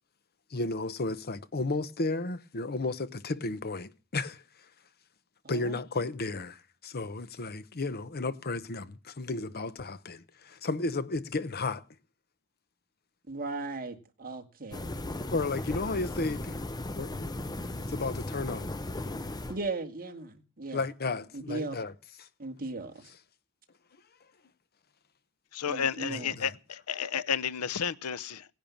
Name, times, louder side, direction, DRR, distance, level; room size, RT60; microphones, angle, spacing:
voice 1, 0.5-4.4 5.5-11.8 15.3-16.6 17.0-17.3 17.8-18.7 20.7-21.9 22.2-22.3 26.1-26.5, left 3 dB, 45° left, 0.9 m, -33 dB
voice 2, 13.3-15.0 19.5-20.8 21.3-21.8 22.4-23.0 25.7-26.3, right 3 dB, 40° right, 2.1 m, -37 dB
sound 1, 14.7-19.7, left 1 dB, 20° left, 0.8 m, -36 dB
voice 3, 25.5-28.4, left 7 dB, 80° left, 0.7 m, -32 dB
17.5 x 10.5 x 7.2 m
head